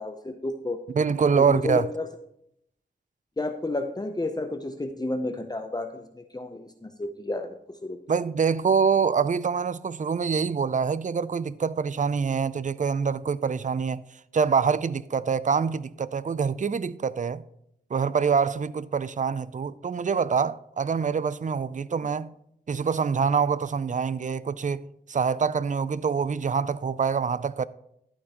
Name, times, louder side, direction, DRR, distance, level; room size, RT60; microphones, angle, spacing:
voice 1, 0.0-0.8 1.3-2.1 3.4-8.0, left 2 dB, 20° left, 0.6 m, -31 dB
voice 2, 0.9-1.9 8.1-14.0 14.3-17.4 17.9-22.3 22.7-27.7, right 6 dB, 45° right, 0.4 m, -25 dB
11.5 x 8.5 x 2.9 m
wide cardioid pair, 55°, 18 cm